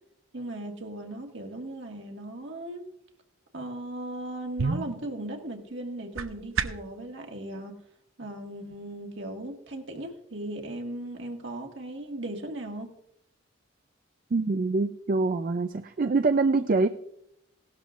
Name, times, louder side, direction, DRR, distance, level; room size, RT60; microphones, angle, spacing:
voice 1, 0.3-2.9 3.5-7.8 8.2-12.9, right 1 dB, 60° right, 2 dB, 1.8 m, -37 dB
sound 1, 4.1-7.0, right 4 dB, 90° right, 0.8 m, -33 dB
voice 2, 14.3-16.9, right 3 dB, 40° right, 8 dB, 0.4 m, -25 dB
17.5 x 12.0 x 2.5 m, 0.77 s
head